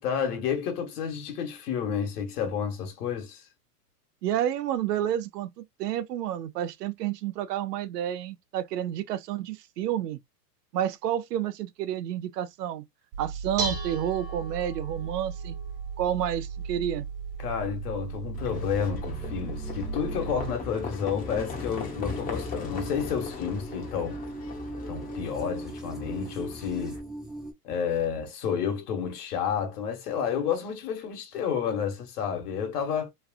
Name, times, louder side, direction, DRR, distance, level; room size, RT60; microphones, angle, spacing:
voice 1, 0.0-3.4 17.4-24.2 24.9-27.0 27.6-33.1, left 7 dB, 70° left, 1.4 m, -30 dB
voice 2, 4.2-10.2 10.7-12.8 13.2-15.6 16.0-17.1, right 11 dB, 75° right, 0.7 m, -30 dB
Dishes pots and pans, 13.1-20.5, right 5 dB, 45° right, 1.4 m, -35 dB
Livestock farm animals working animals, 18.3-27.0, left 4 dB, 20° left, 0.8 m, -39 dB
sound 1, 19.1-27.5, right 1 dB, ahead, 0.4 m, -40 dB
3.1 x 2.4 x 2.3 m
hypercardioid pair, 125°, 49 cm